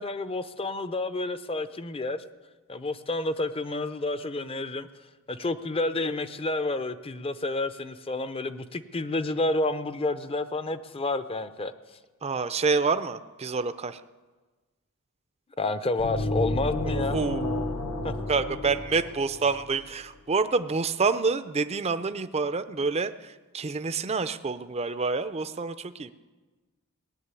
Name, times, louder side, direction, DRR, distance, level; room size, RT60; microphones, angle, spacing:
voice 1, 0.0-2.2 2.7-4.9 5.3-11.7 15.6-17.2 18.0-18.1, left 2 dB, 25° left, 12 dB, 0.6 m, -30 dB
voice 2, 12.2-14.0 16.9-26.1, right 4 dB, 30° right, 11 dB, 0.5 m, -28 dB
sound 1, 16.0-19.8, left 2 dB, 65° left, 1.2 m, -31 dB
18.5 x 7.5 x 9.7 m, 1.3 s
head